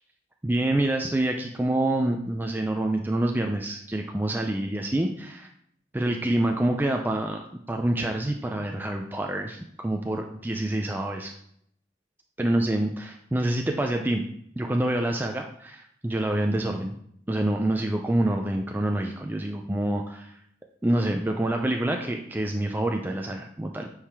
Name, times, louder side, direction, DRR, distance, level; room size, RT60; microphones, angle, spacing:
voice 1, 0.4-5.5 5.9-11.3 12.4-14.2 14.6-17.0 17.3-20.4 20.8-23.9, right 1 dB, 10° right, 2 dB, 0.4 m, -27 dB
8.5 x 4.9 x 3.5 m, 0.69 s
head